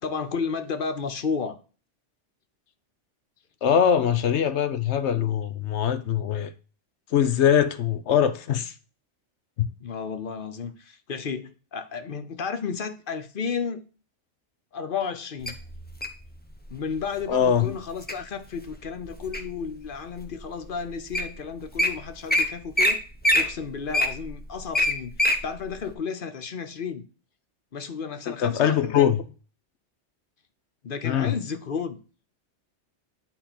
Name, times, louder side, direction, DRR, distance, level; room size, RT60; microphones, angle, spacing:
voice 1, 0.0-1.6 9.8-13.8 14.7-15.5 16.7-23.0 23.3-27.1 27.7-29.2 30.8-32.0, left 5 dB, 50° left, 0.9 m, -32 dB
voice 2, 3.6-6.5 7.1-8.7 9.6-9.7 17.3-17.7 28.3-29.2 31.0-31.4, left 9 dB, 75° left, 1.0 m, -22 dB
Wild animals, 15.5-16.2 16.9-17.2 17.7-18.1 18.7-19.6 20.2-20.3 20.9-21.0 21.1-21.3 21.6-21.9 22.3-22.4 22.7-22.9 23.2-25.4 25.8-25.9, left 1 dB, 10° left, 0.8 m, -23 dB
10.5 x 3.8 x 4.2 m
omnidirectional pair, 1.2 m